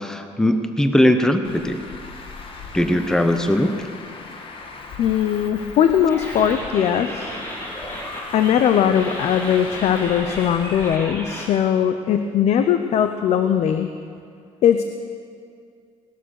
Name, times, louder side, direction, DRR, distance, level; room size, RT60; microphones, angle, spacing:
voice 1, 0.0-1.8 2.7-3.8, left 1 dB, 5° left, 8 dB, 0.9 m, -19 dB
Traffic noise roadway noise, 1.4-11.0, left 3 dB, 50° left, 1.8 m, -38 dB
voice 2, 5.0-7.4 8.3-13.9 14.6-14.8, left 9 dB, 70° left, 9 dB, 0.8 m, -19 dB
sound 1, 6.1-11.5, equal, 20° left, 3.7 m, -34 dB
18.5 x 12.0 x 6.6 m, 2.3 s
cardioid pair, 110°, 12 cm